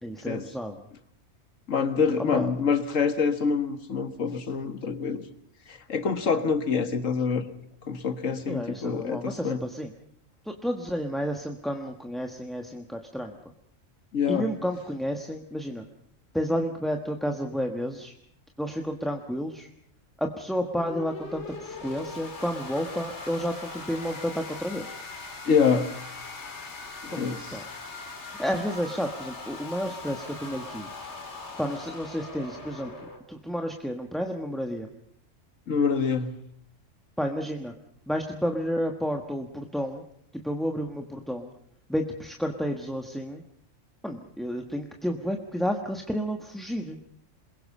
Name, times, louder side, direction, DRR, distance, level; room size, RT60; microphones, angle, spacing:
voice 1, 0.0-0.8 2.3-2.5 8.5-9.9 10.4-13.4 14.3-15.8 16.3-18.1 18.6-19.7 20.2-25.0 27.1-27.6 28.4-30.9 31.6-32.9 33.3-34.9 37.2-37.7 38.1-40.0 40.4-41.5 41.9-43.4 44.0-47.0, equal, ahead, 3 dB, 1.2 m, -31 dB
voice 2, 1.7-5.3 5.7-7.5 7.9-9.6 14.1-14.5 25.5-26.0 27.0-27.6 35.7-36.4, left 5 dB, 75° left, 9 dB, 1.9 m, -26 dB
sound 1, 20.6-33.2, left 3 dB, 60° left, 2.7 m, -40 dB
28.0 x 21.5 x 5.5 m, 0.66 s
omnidirectional pair, 1.3 m